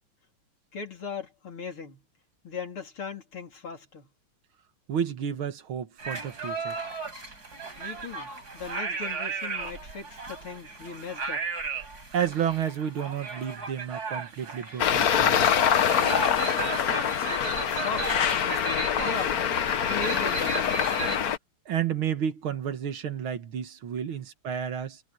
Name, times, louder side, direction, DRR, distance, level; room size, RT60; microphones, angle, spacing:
voice 1, 0.7-2.0 2.4-4.1 7.8-11.5 16.8-18.3 19.0-19.5 19.8-20.8, left 5 dB, 80° left, 4.5 m, -38 dB
voice 2, 4.9-6.8 12.1-15.5 21.7-25.0, right 8 dB, 75° right, 2.3 m, -31 dB
sound 1, 6.0-21.2, right 4 dB, 45° right, 6.0 m, -35 dB
Traffic noise roadway noise, 14.8-21.4, left 8 dB, 50° left, 1.3 m, -25 dB
omnidirectional pair, 2.3 m